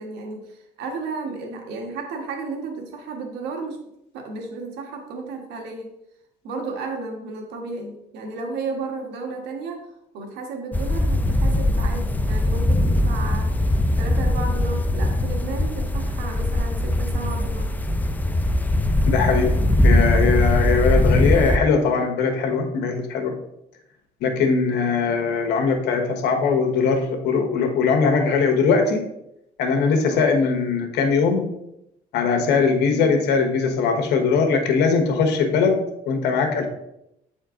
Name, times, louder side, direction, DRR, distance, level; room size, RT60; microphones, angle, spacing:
voice 1, 0.0-3.8 4.1-5.9 6.4-9.9 10.1-13.7 14.0-17.7 24.2-24.4 30.1-30.3 32.4-32.6, right 3 dB, 90° right, 2 dB, 1.4 m, -33 dB
sound 1, 10.7-21.6, left 1 dB, 10° left, 0.4 m, -21 dB
voice 2, 19.0-23.3 24.2-29.1 29.6-31.5 32.1-35.8 36.1-36.7, left 5 dB, 85° left, 5 dB, 1.2 m, -20 dB
7.7 x 4.4 x 3.7 m, 0.82 s
cardioid pair, 110°, 17 cm